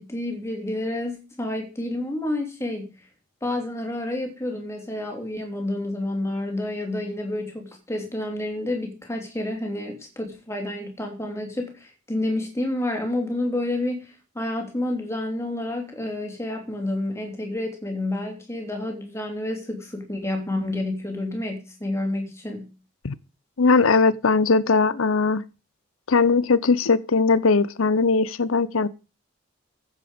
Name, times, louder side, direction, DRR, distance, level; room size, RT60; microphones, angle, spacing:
voice 1, 0.0-2.9 3.4-22.7, left 1 dB, 15° left, 3.0 m, -29 dB
voice 2, 23.6-25.4 26.1-28.9, left 4 dB, 85° left, 0.7 m, -19 dB
15.0 x 7.4 x 5.2 m
head